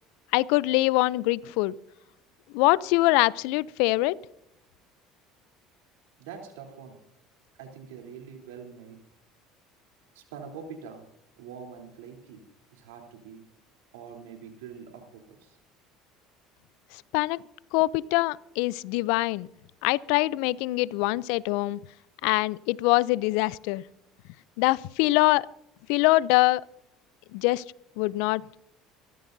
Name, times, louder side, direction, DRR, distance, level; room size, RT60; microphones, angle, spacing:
voice 1, 0.3-1.7 2.5-4.2 17.1-17.4 17.7-19.5 19.8-21.8 22.2-23.8 24.6-25.5 25.9-26.6 27.3-27.6 28.0-28.4, left 20 dB, 75° left, 0.4 m, -23 dB
voice 2, 6.2-7.0 7.6-9.0 10.1-11.0 11.4-12.4 12.7-13.4 13.9-15.6, right 6 dB, 85° right, 3.3 m, -44 dB
26.0 x 14.0 x 2.7 m
supercardioid pair, 85°, 0 cm